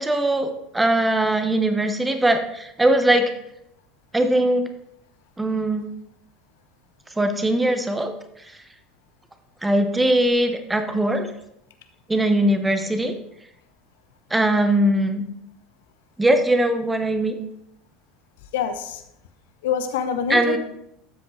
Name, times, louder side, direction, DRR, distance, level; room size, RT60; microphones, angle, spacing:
voice 1, 0.0-3.3 4.1-4.7 5.4-5.8 7.2-8.1 9.6-11.3 12.1-13.1 14.3-15.3 16.2-17.3 20.3-20.6, right 1 dB, 10° right, 7 dB, 1.1 m, -20 dB
voice 2, 18.5-19.0 19.6-20.6, left 7 dB, 65° left, 9 dB, 0.8 m, -25 dB
12.5 x 7.8 x 3.3 m, 0.78 s
figure-of-eight pair, 70°, 0 cm